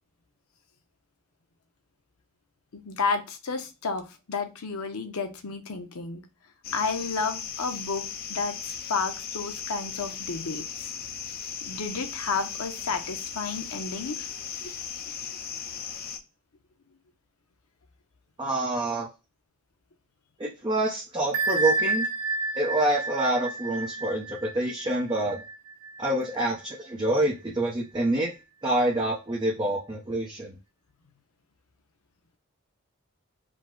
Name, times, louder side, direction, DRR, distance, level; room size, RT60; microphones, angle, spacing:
voice 1, 2.7-6.2 6.7-8.0 8.3-10.9 11.6-14.3 14.6-14.7, left 4 dB, 85° left, 7 dB, 0.8 m, -31 dB
sound 1, 6.6-16.2, left 7 dB, 45° left, 0.6 m, -37 dB
voice 2, 18.4-19.1 20.4-22.1 22.5-25.4 26.0-28.3 28.6-30.5, right 1 dB, 20° right, -3 dB, 0.7 m, -27 dB
Bell, 21.3-26.8, right 3 dB, 70° right, 0.5 m, -30 dB
5.0 x 2.1 x 3.7 m, 0.28 s
head